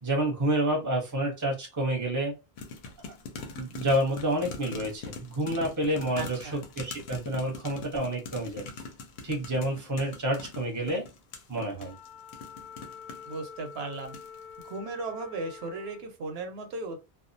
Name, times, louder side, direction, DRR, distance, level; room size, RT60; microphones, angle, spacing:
voice 1, 0.0-2.3 3.0-3.1 3.6-8.7 9.2-11.1 11.5-11.9, right 1 dB, 20° right, 0.7 m, -29 dB
sound 1, 2.6-13.4 13.9-14.4 14.6-14.7, left 4 dB, 90° left, 0.8 m, -42 dB
voice 2, 6.2-6.6 13.3-14.2 14.6-17.0, right 3 dB, 80° right, 0.8 m, -36 dB
Wind instrument woodwind instrument, 11.8-16.1, left 7 dB, 55° left, 0.5 m, -46 dB
2.3 x 2.0 x 2.6 m
omnidirectional pair, 1.1 m